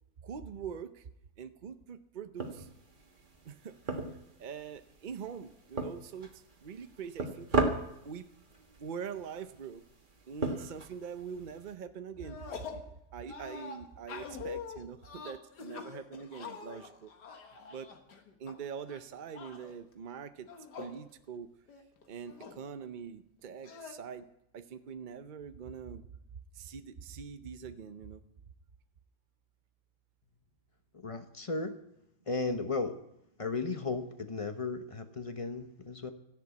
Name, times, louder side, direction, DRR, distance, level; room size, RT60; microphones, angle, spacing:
voice 1, 0.2-1.0 1.4-2.7 3.5-6.3 6.6-7.6 8.0-8.3 8.8-9.8 10.3-12.8 13.1-17.1 17.7-17.9 18.4-20.5 20.8-21.5 22.1-24.3 24.5-26.1 26.5-28.2, right 7 dB, 60° right, 9 dB, 0.5 m, -43 dB
sound 1, 2.4-11.7, right 2 dB, 30° right, 1.5 m, -38 dB
sound 2, 12.2-12.9 13.3-18.5 18.9-19.7 20.4-21.0 21.3-21.4 21.7-22.6 23.6-23.9, left 5 dB, 80° left, 2.1 m, -45 dB
voice 2, 30.9-31.7 32.3-33.0 33.4-36.1, left 3 dB, 30° left, 9 dB, 0.6 m, -35 dB
13.5 x 11.0 x 8.3 m, 0.82 s
omnidirectional pair, 1.8 m